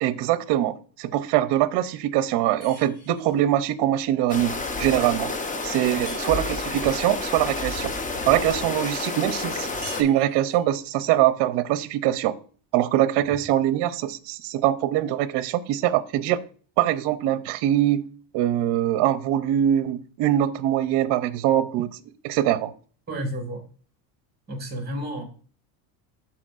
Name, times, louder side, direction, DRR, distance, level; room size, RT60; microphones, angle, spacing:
voice 1, 0.0-5.3 5.6-7.9 8.3-12.3 12.7-16.4 16.8-18.1 18.3-21.9 22.2-22.7, right 12 dB, 60° right, 0.7 m, -23 dB
sound 1, 2.6-3.4 6.1-6.8 9.8-10.7, left 2 dB, 55° left, 2.6 m, -45 dB
sound 2, 4.3-10.0, left 3 dB, 15° left, 0.7 m, -30 dB
voice 2, 23.1-23.6 24.5-25.2, right 1 dB, 20° right, 1.8 m, -32 dB
11.5 x 4.3 x 2.4 m
cardioid pair, 120°, 46 cm